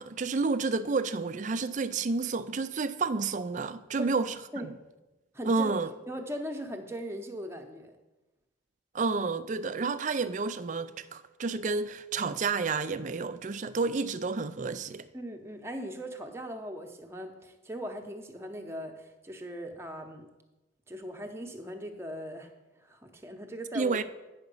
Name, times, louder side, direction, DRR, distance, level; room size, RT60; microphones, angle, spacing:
voice 1, 0.0-4.7 5.4-5.9 8.9-15.1 23.7-24.0, right 4 dB, 40° right, 0.4 m, -30 dB
voice 2, 5.3-5.7 6.1-8.0 15.1-20.3 20.9-22.5 22.8-24.0, equal, 15° right, 0.7 m, -39 dB
9.2 x 5.8 x 5.4 m
head